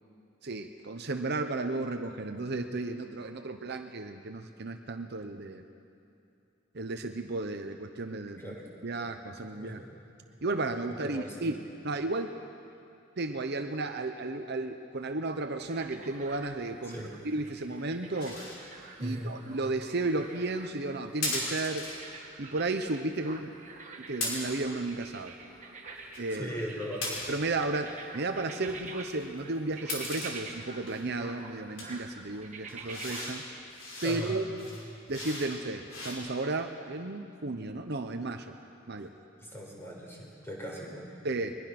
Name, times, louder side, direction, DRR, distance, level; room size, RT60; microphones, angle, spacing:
voice 1, 0.4-5.6 6.7-8.5 8.8-9.8 10.4-12.3 13.2-18.4 19.0-21.9 22.4-23.5 24.0-25.3 26.2-26.5 27.3-33.4 34.0-34.4 35.1-38.6 38.9-39.1 41.2-41.6, right 2 dB, 55° right, 6 dB, 0.9 m, -33 dB
voice 2, 11.0-11.5 16.8-17.1 19.0-19.3 26.4-27.1 34.0-34.4 39.4-41.1, equal, 10° left, -2 dB, 4.7 m, -38 dB
sound 1, 15.6-33.3, right 4 dB, 35° right, 1.8 m, -48 dB
sound 2, 18.2-18.6 21.2-22.0 24.2-24.7 25.9-26.2 27.0-27.5 28.7-30.4 30.9-31.2 31.8-31.9 32.7-33.4 33.7-34.2 34.6-35.5 35.9-36.1, left 2 dB, 65° left, 5.1 m, -37 dB
23.0 x 21.0 x 6.0 m, 2.7 s
head